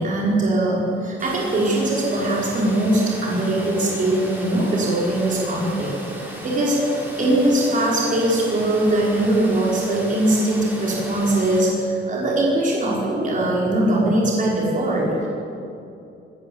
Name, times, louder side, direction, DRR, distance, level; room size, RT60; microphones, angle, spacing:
voice 1, 0.0-5.9 6.4-6.8 7.2-15.3, right 1 dB, 40° right, -4 dB, 5.2 m, -21 dB
Water, 1.2-11.6, equal, 10° right, 5.2 m, -36 dB
19.5 x 18.0 x 8.1 m, 2.7 s
cardioid pair, 145°, 20 cm